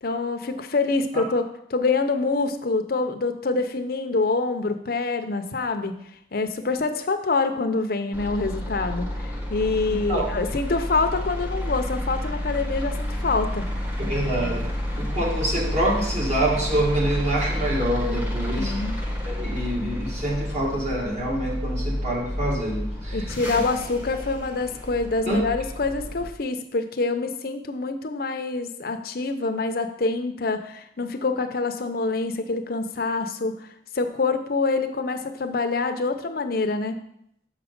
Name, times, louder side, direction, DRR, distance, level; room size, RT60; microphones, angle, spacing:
voice 1, 0.0-6.0 6.3-13.7 18.5-19.0 23.1-33.7 33.9-37.0, left 3 dB, 55° left, 7 dB, 0.6 m, -26 dB
sound 1, 8.1-26.3, left 1 dB, 10° right, 1.1 m, -30 dB
voice 2, 14.1-14.6 15.0-18.7 19.3-23.2 23.5-23.6 25.3-25.4, right 1 dB, 40° right, -3 dB, 2.0 m, -26 dB
6.6 x 5.0 x 5.1 m, 0.73 s
head